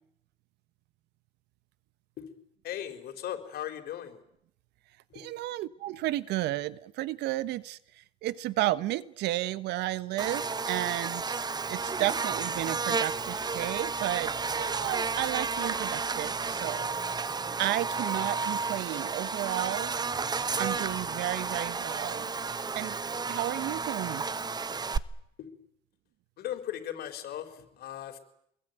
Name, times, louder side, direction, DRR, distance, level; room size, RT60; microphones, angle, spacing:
voice 1, 2.6-4.2 5.1-5.2 25.4-25.5 26.4-28.2, left 11 dB, 65° left, 4.4 m, -38 dB
voice 2, 5.1-11.4 11.7-16.9 17.6-19.9 20.6-22.3 22.7-23.0 23.3-24.2, right 15 dB, 85° right, 1.3 m, -32 dB
Buzz, 10.2-25.0, right 4 dB, 25° right, 1.1 m, -32 dB
27.5 x 22.0 x 9.2 m
cardioid pair, 110°, 17 cm